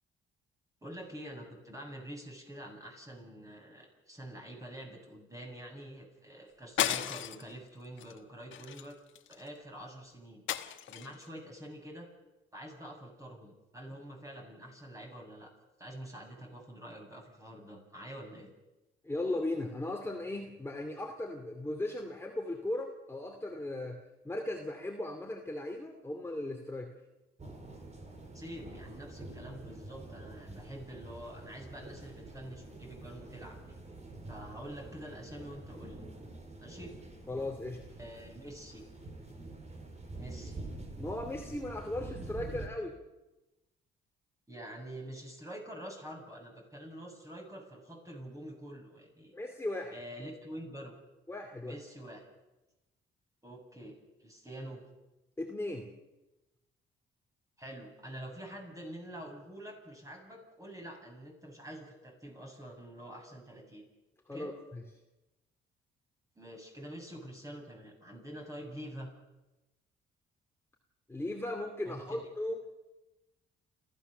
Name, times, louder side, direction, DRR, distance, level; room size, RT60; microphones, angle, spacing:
voice 1, 0.8-9.0 9.3-10.4 10.9-12.1 12.5-15.5 15.8-18.5 28.3-33.8 34.2-36.1 36.6-36.9 38.0-38.8 40.2-40.6 44.5-49.3 49.9-50.9 51.6-52.3 53.4-54.8 57.6-63.8 64.3-64.5 66.4-69.1 71.8-72.3, right 1 dB, 15° right, 1 dB, 7.8 m, -46 dB
sound 1, 6.8-7.5 8.0-8.2 8.5-9.5 10.5-11.2, left 11 dB, 75° left, 1.3 m, -34 dB
voice 2, 19.0-24.0 24.2-26.9 37.3-37.8 41.0-43.0 49.3-49.9 51.3-51.7 55.4-55.9 64.3-64.8 71.1-72.6, left 1 dB, 10° left, 2 dB, 2.4 m, -37 dB
sound 2, 27.4-42.7, right 2 dB, 35° right, 4.4 m, -46 dB
29.5 x 14.5 x 6.7 m, 1.0 s
cardioid pair, 90°, 20 cm